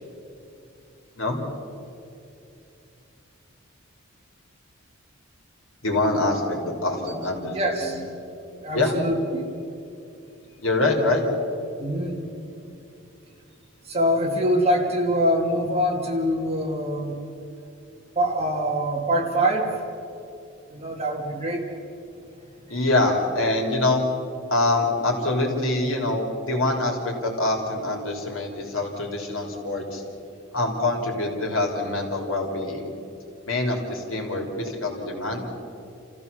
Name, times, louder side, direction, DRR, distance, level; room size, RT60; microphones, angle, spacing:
voice 1, 5.8-7.9 8.7-8.9 10.6-11.2 22.7-24.0 24.5-30.0 30.5-32.9 33.5-35.4, left 2 dB, 70° left, 1 dB, 3.5 m, -25 dB
voice 2, 7.1-8.0 8.6-9.5 11.8-12.2 13.8-17.2 18.2-19.8 20.7-21.6, equal, 30° right, 0 dB, 2.6 m, -24 dB
29.0 x 15.0 x 7.0 m, 2.7 s
head